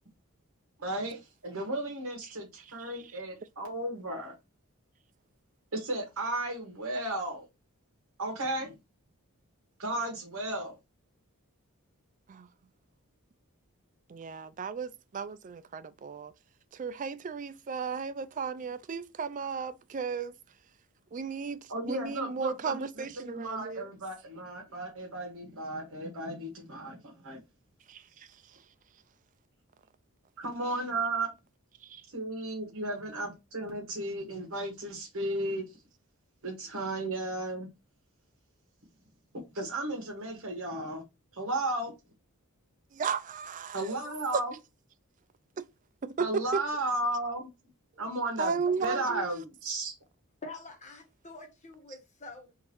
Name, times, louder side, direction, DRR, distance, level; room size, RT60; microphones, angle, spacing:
voice 1, 0.8-4.3 5.7-7.4 8.2-8.7 9.8-10.8 21.7-27.4 30.4-31.3 32.1-35.6 36.4-37.7 39.5-41.0 41.3-41.9 43.7-44.5 46.2-47.5 48.0-49.9, right 2 dB, 65° right, 1.3 m, -34 dB
voice 2, 14.1-16.3 16.7-20.3 21.1-23.9 27.9-28.3 31.8-32.0 42.9-44.0 44.3-44.4 46.2-46.6 48.4-49.3, right 5 dB, 35° right, 0.4 m, -34 dB
voice 3, 50.4-52.5, left 2 dB, 35° left, 1.2 m, -46 dB
3.8 x 2.6 x 4.4 m
head